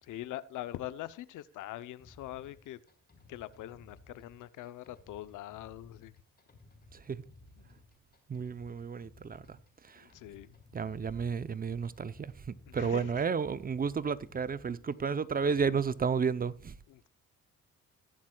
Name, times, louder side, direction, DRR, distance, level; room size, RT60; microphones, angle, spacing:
voice 1, 0.0-2.8 3.3-6.2 7.6-7.8 10.0-10.6 12.7-13.2 16.9-17.1, left 14 dB, 85° left, 0.7 m, -43 dB
sound 1, 2.0-15.9, left 2 dB, 30° left, 4.1 m, -59 dB
voice 2, 6.9-7.2 8.3-9.6 9.9-10.0 10.7-12.3 12.7-16.7, right 6 dB, 30° right, 0.6 m, -32 dB
21.0 x 7.4 x 2.3 m
cardioid pair, 90°, 30 cm